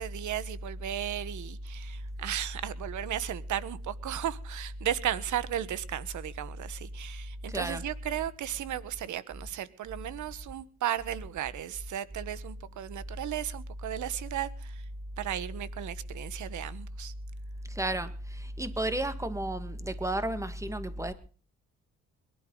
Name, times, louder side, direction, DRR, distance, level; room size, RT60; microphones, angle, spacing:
voice 1, 0.0-14.8 15.2-17.1, right 11 dB, 75° right, 1.4 m, -35 dB
voice 2, 7.5-7.8 17.7-21.1, right 1 dB, 10° right, 2.0 m, -32 dB
22.0 x 11.5 x 3.9 m
cardioid pair, 90°, 30 cm